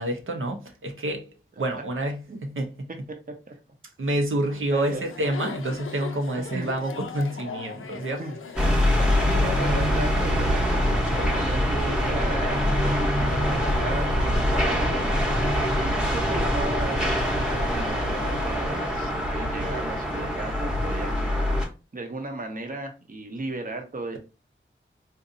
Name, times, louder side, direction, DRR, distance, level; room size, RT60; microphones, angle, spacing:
voice 1, 0.0-2.7 4.0-8.2, right 1 dB, 80° right, 0.7 m, -28 dB
voice 2, 4.7-5.1 5.4-5.5 6.5-6.7 8.2-8.4 9.3-17.2 17.7-21.5 21.9-24.2, right 2 dB, 45° right, 0.7 m, -35 dB
Chatter, 4.9-19.0, left 5 dB, 85° left, 0.5 m, -39 dB
sound 1, 8.6-21.6, equal, 5° right, 0.8 m, -24 dB
3.9 x 2.6 x 2.5 m
wide cardioid pair, 85°, 20 cm